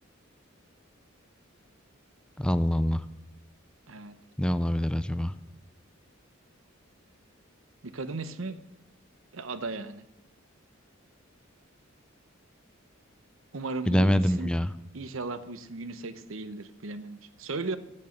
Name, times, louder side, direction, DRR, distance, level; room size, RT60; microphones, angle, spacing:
voice 1, 2.4-3.0 4.4-5.3 13.9-14.7, equal, 5° left, 13 dB, 0.4 m, -25 dB
voice 2, 7.8-8.6 9.3-10.1 13.5-14.5 14.9-17.8, right 3 dB, 80° right, 12 dB, 0.9 m, -36 dB
14.5 x 6.7 x 6.6 m, 0.91 s
head